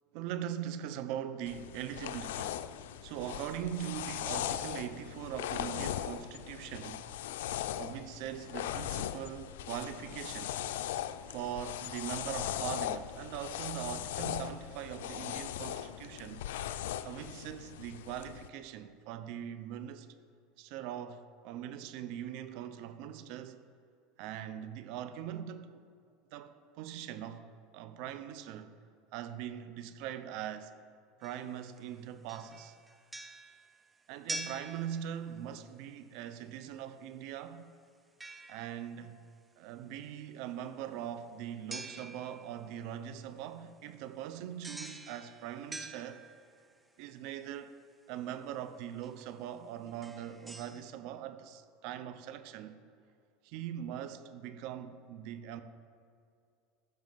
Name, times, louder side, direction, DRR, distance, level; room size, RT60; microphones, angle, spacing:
voice 1, 0.1-2.6 3.0-7.1 7.8-10.5 11.3-16.5 17.0-20.1 20.6-23.6 24.2-25.8 26.3-27.5 27.7-28.8 29.1-30.7 31.2-32.7 34.1-37.6 38.5-39.2 39.6-46.2 47.0-47.8 48.1-52.8 53.4-55.6, right 10 dB, 60° right, 0.9 m, -41 dB
sound 1, 1.5-18.5, left 11 dB, 90° left, 0.5 m, -39 dB
sound 2, 31.2-31.9 32.3-35.6 38.2-39.1 41.7-42.7 44.6-46.7 48.3-48.4 49.0-49.2 49.9-50.8, right 2 dB, 10° right, 0.9 m, -46 dB
14.5 x 6.3 x 7.6 m
supercardioid pair, 135°, 0 cm